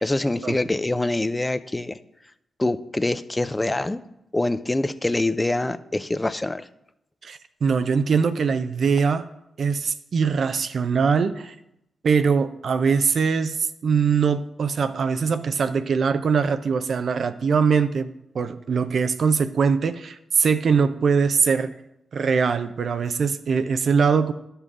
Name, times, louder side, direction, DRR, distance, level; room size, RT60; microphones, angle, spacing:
voice 1, 0.0-2.0 2.6-4.0 4.3-6.7, left 2 dB, 20° left, 13 dB, 0.5 m, -25 dB
voice 2, 7.2-9.3 9.6-11.5 12.0-21.7 22.1-24.3, right 5 dB, 65° right, 11 dB, 0.5 m, -22 dB
12.0 x 5.6 x 3.7 m, 0.85 s
supercardioid pair, 40°, 0 cm